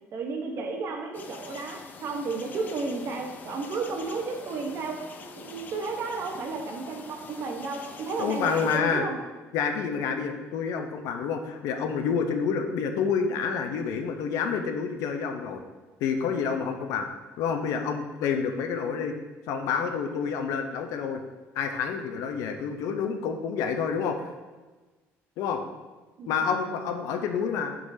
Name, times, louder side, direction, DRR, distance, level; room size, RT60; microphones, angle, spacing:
voice 1, 0.1-9.2 26.2-26.5 26.9-27.1, right 4 dB, 45° right, 2 dB, 0.9 m, -33 dB
sound 1, 1.1-8.8, left 5 dB, 30° left, 0.4 m, -45 dB
voice 2, 8.2-9.1 9.5-15.6 16.0-17.1 17.4-19.1 19.5-21.2 21.6-24.3 25.4-25.6 26.3-27.7, left 6 dB, 75° left, 5 dB, 0.6 m, -28 dB
9.2 x 3.8 x 2.7 m, 1.3 s
cardioid pair, 150°, 6 cm